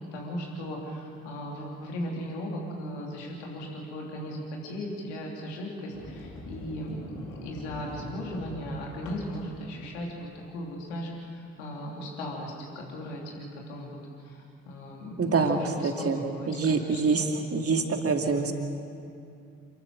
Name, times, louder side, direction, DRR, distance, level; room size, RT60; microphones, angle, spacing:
voice 1, 0.1-10.1 10.3-17.0 17.3-17.6, equal, 80° left, -1 dB, 3.3 m, -37 dB
Sliding door, 5.9-10.8, left 2 dB, 55° left, 3.5 m, -44 dB
voice 2, 15.2-17.2 17.5-18.5, right 4 dB, 40° right, 3 dB, 2.6 m, -26 dB
28.5 x 13.0 x 7.7 m, 2.5 s
figure-of-eight pair, 40°, 34 cm